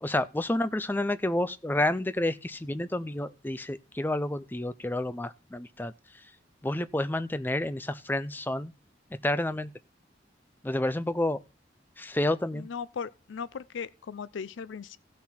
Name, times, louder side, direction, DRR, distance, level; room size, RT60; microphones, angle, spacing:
voice 1, 0.0-5.9 6.6-8.7 9.2-9.7 10.6-11.4 12.0-12.7, left 1 dB, 10° left, 0.4 m, -29 dB
voice 2, 12.5-15.0, left 6 dB, 85° left, 0.4 m, -38 dB
15.5 x 6.0 x 4.3 m
head